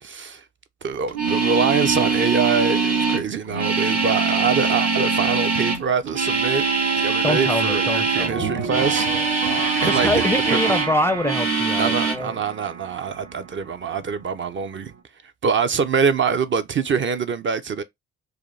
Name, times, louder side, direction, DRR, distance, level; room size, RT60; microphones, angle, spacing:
voice 1, 0.0-0.4 0.8-6.7 7.0-9.1 9.8-10.2 10.5-10.8 11.8-14.9 15.4-17.8, right 6 dB, 40° right, 0.5 m, -24 dB
sound 1, 1.1-8.3 8.6-10.9 11.2-12.1, right 4 dB, 60° right, 1.7 m, -22 dB
voice 2, 7.2-8.8 9.8-12.4, left 1 dB, 10° left, 0.4 m, -25 dB
sound 2, 8.3-15.0, right 5 dB, 85° right, 1.4 m, -32 dB
4.9 x 2.1 x 3.1 m
cardioid pair, 90°, 30 cm